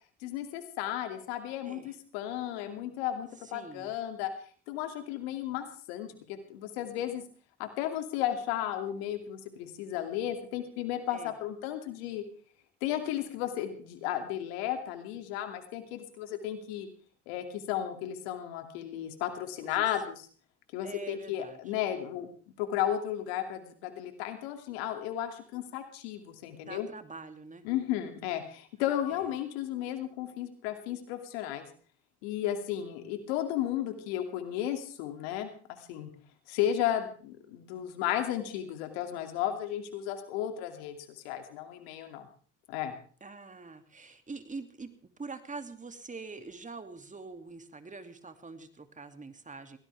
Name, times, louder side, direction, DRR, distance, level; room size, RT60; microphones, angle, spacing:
voice 1, 0.2-4.3 4.7-7.2 7.6-12.2 12.8-16.9 17.3-20.3 20.7-22.3 22.6-26.9 27.6-31.6 32.2-35.5 35.9-36.1 36.5-42.3 42.7-42.9, left 11 dB, 80° left, 7 dB, 2.6 m, -34 dB
voice 2, 1.6-2.0 3.4-3.9 11.1-11.3 19.6-19.9 20.8-21.6 26.5-27.6 29.1-29.3 43.2-44.9 45.2-49.8, right 4 dB, 25° right, 8 dB, 2.6 m, -44 dB
22.0 x 18.0 x 3.5 m, 0.42 s
hypercardioid pair, 60°, 31 cm